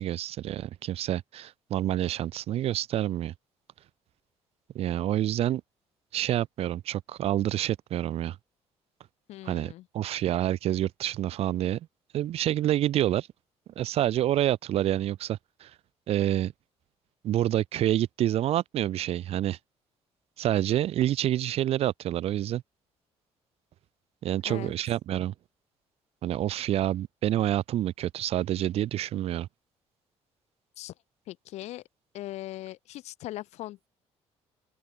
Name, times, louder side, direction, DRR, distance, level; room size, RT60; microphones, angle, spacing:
voice 1, 0.0-3.3 4.7-5.6 6.1-8.4 9.4-11.8 12.1-13.3 13.8-15.7 16.1-16.5 17.2-19.6 20.4-22.6 24.2-25.3 26.2-29.5, right 12 dB, 65° right, 1.0 m, -28 dB
voice 2, 9.3-9.8 24.4-24.7 30.8-30.9 31.3-31.8 32.1-33.9, left 15 dB, 80° left, 1.5 m, -40 dB
open air
cardioid pair, 130°, 11 cm